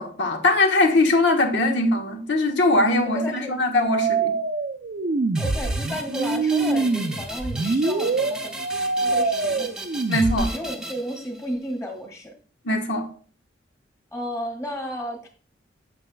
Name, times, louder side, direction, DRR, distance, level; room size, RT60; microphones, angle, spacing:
voice 1, 0.0-4.3 10.1-10.5 12.6-13.1, left 2 dB, 70° left, 1.3 m, -21 dB
voice 2, 3.1-3.5 5.4-8.5 9.0-9.7 10.4-12.3 14.1-15.3, equal, 15° left, 1.9 m, -32 dB
sound 1, 3.9-10.5, right 3 dB, 50° right, 0.5 m, -24 dB
sound 2, 5.3-11.7, right 1 dB, 5° right, 0.7 m, -37 dB
9.5 x 6.8 x 2.3 m
head